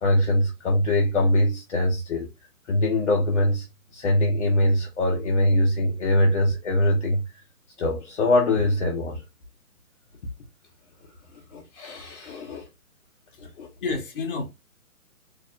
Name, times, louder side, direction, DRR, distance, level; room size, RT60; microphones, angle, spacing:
voice 1, 0.0-2.3 2.7-3.7 3.9-7.2 7.8-9.2 11.5-12.6 13.4-13.7, left 1 dB, 50° left, 0.9 m, -22 dB
voice 2, 13.8-14.5, left 4 dB, 35° left, 1.2 m, -30 dB
4.1 x 2.8 x 2.3 m
hypercardioid pair, 160°, 44 cm